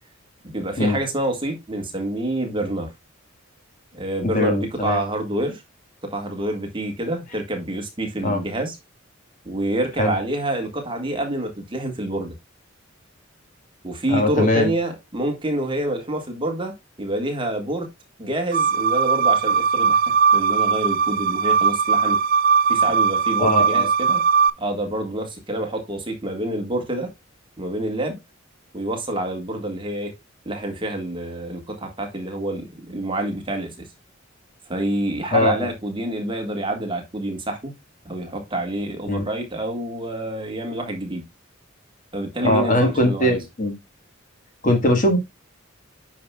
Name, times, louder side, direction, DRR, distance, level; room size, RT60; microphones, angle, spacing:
voice 1, 0.4-2.9 3.9-5.6 6.0-8.8 9.4-12.3 13.8-17.9 18.2-20.0 20.3-22.2 22.7-24.2 24.6-27.1 27.6-28.2 28.7-30.1 30.4-33.9 34.7-37.7 38.0-41.2 42.1-43.4, right 1 dB, 25° right, 1.6 m, -27 dB
voice 2, 4.2-5.0 8.2-8.4 10.0-10.1 14.1-14.7 23.4-23.9 35.3-35.7 39.1-39.2 42.4-43.7 44.6-45.2, left 1 dB, 40° left, 1.6 m, -20 dB
sound 1, 18.5-24.5, right 5 dB, 45° right, 0.5 m, -19 dB
9.2 x 5.6 x 2.3 m
head